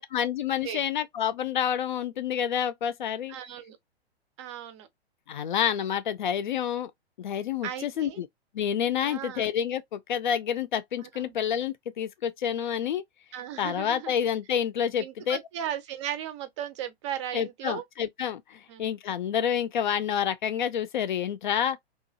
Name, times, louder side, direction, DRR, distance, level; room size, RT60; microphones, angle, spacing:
voice 1, 0.0-3.4 5.3-6.9 7.2-8.3 8.5-13.0 13.6-15.4 17.3-21.8, left 9 dB, 50° left, 0.4 m, -28 dB
voice 2, 3.3-3.8 4.4-4.9 7.6-8.2 9.0-9.5 11.2-11.3 13.3-14.3 15.0-17.8 18.7-18.8, right 10 dB, 30° right, 0.5 m, -36 dB
2.9 x 2.4 x 2.6 m
figure-of-eight pair, 110°, 32 cm